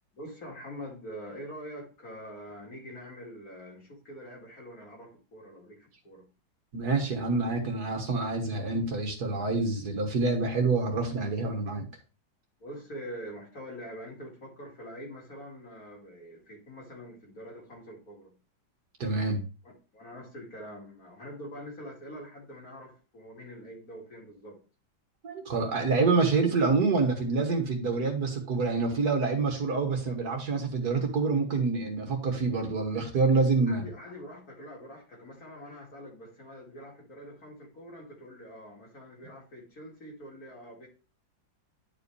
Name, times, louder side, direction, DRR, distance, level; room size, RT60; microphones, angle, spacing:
voice 1, 0.1-6.3 12.6-18.3 19.6-24.6 33.7-40.9, equal, 45° left, 2.7 m, -45 dB
voice 2, 6.7-11.9 19.0-19.4 25.2-33.9, right 4 dB, 55° right, 1.8 m, -27 dB
10.5 x 4.9 x 3.2 m
omnidirectional pair, 2.2 m